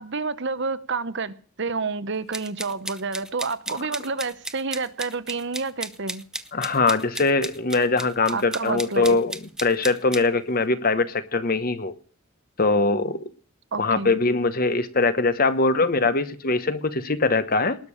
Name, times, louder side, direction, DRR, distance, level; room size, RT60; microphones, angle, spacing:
voice 1, 0.0-6.2 8.3-9.2 13.7-14.1, right 4 dB, 55° right, 14 dB, 0.9 m, -29 dB
sound 1, 2.3-10.2, right 1 dB, 5° right, 0.6 m, -35 dB
voice 2, 6.5-12.0 12.6-13.2 13.8-17.8, left 3 dB, 40° left, 12 dB, 1.0 m, -22 dB
19.5 x 6.8 x 9.8 m, 0.42 s
head